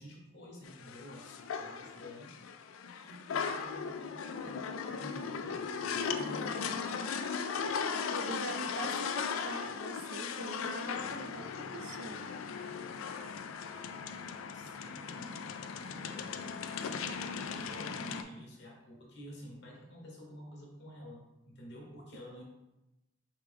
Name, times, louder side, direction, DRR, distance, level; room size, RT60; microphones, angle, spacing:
voice 1, 0.0-2.3 3.0-6.8 14.5-16.4 17.3-22.4, equal, 60° left, -1 dB, 1.1 m, -49 dB
sound 1, 0.7-18.2, left 6 dB, 75° left, 0.3 m, -37 dB
voice 2, 7.6-12.3, right 3 dB, 65° right, 7 dB, 0.4 m, -44 dB
4.4 x 3.3 x 3.4 m, 0.98 s
head